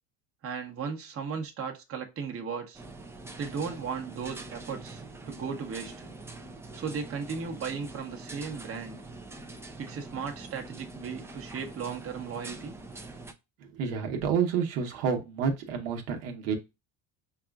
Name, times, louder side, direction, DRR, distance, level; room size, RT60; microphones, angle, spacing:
voice 1, 0.4-2.8 3.4-6.1 6.7-9.0 9.8-12.8, right 6 dB, 35° right, 1.0 m, -36 dB
sound 1, 2.7-13.3, right 2 dB, 5° right, 0.4 m, -44 dB
voice 2, 13.7-16.6, right 6 dB, 85° right, 1.1 m, -29 dB
5.7 x 2.4 x 2.3 m
cardioid pair, 110°, 42 cm